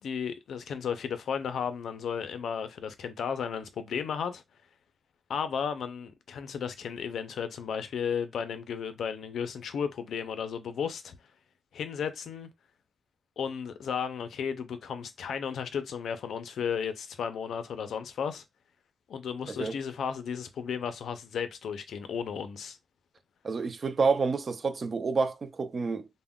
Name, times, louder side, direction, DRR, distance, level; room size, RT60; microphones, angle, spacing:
voice 1, 0.0-4.4 5.3-11.2 11.7-12.5 13.4-18.4 19.1-22.8, left 7 dB, 85° left, 0.4 m, -34 dB
voice 2, 23.4-26.1, right 4 dB, 35° right, 0.3 m, -28 dB
2.2 x 2.0 x 3.5 m
wide cardioid pair, 170°, 0 cm